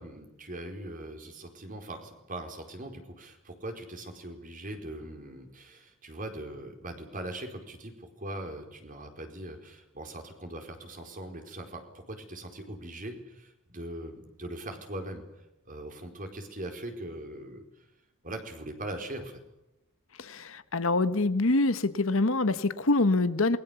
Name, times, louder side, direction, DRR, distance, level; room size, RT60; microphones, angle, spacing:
voice 1, 0.0-17.9 18.2-19.4, right 1 dB, 40° right, 4 dB, 4.5 m, -41 dB
voice 2, 20.2-23.6, left 2 dB, 70° left, 13 dB, 1.2 m, -25 dB
28.0 x 22.0 x 7.0 m, 0.91 s
head